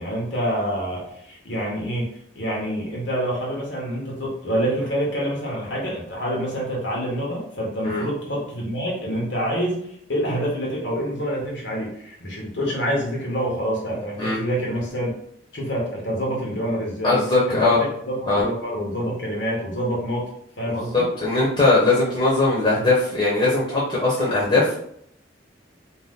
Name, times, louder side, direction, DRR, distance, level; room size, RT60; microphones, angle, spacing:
voice 1, 0.0-2.1 2.3-9.8 10.1-15.1 15.5-17.2 17.5-20.2 20.6-21.1, equal, 80° left, -3 dB, 1.0 m, -27 dB
voice 2, 17.0-17.8 18.3-18.4 20.7-24.8, left 2 dB, 30° left, -6 dB, 0.7 m, -20 dB
2.7 x 2.2 x 3.5 m, 0.70 s
head